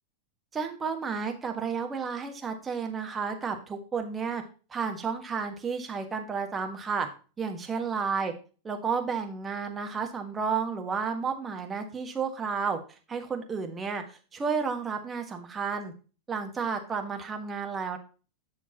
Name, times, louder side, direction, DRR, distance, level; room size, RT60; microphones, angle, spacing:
voice 1, 0.5-4.4 4.7-7.1 7.4-8.3 8.6-12.8 13.1-15.9 16.3-18.0, right 5 dB, 20° right, 4 dB, 1.5 m, -32 dB
9.5 x 6.4 x 2.9 m, 0.35 s
figure-of-eight pair, 90°, 0 cm